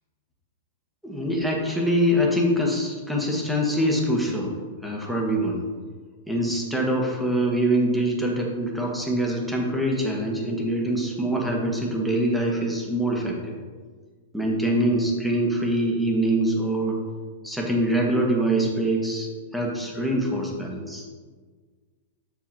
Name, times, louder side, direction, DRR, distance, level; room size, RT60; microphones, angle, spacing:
voice 1, 1.0-4.5 4.8-5.6 6.3-13.6 14.3-17.0 17.4-21.1, right 1 dB, ahead, -1 dB, 1.5 m, -24 dB
7.6 x 6.8 x 3.0 m, 1.5 s
hypercardioid pair, 110°, 0 cm